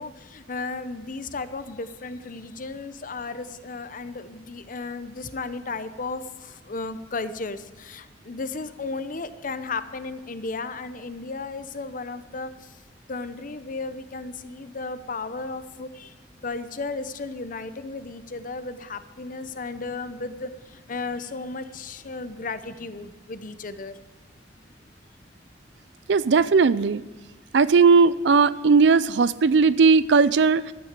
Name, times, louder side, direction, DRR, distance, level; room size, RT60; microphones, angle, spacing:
voice 1, 0.0-12.8 13.1-16.1 16.4-24.0, left 3 dB, 45° left, 12 dB, 0.8 m, -34 dB
voice 2, 26.1-27.0 27.5-30.6, right 5 dB, 65° right, 18 dB, 0.5 m, -17 dB
12.5 x 9.5 x 6.7 m, 1.3 s
head